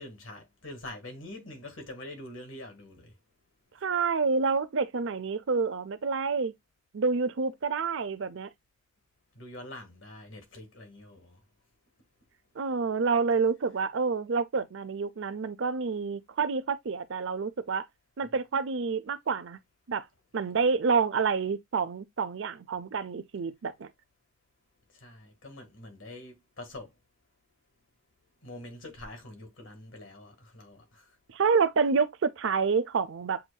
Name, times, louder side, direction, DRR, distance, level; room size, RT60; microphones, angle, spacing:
voice 1, 0.0-3.1 9.4-11.4 24.9-26.9 28.4-31.1, left 1 dB, 70° left, 1.8 m, -45 dB
voice 2, 3.8-6.5 6.9-8.5 12.6-17.9 18.2-19.6 19.9-20.0 20.3-23.9 31.3-33.4, right 5 dB, 65° right, 0.5 m, -28 dB
7.7 x 2.7 x 2.2 m
head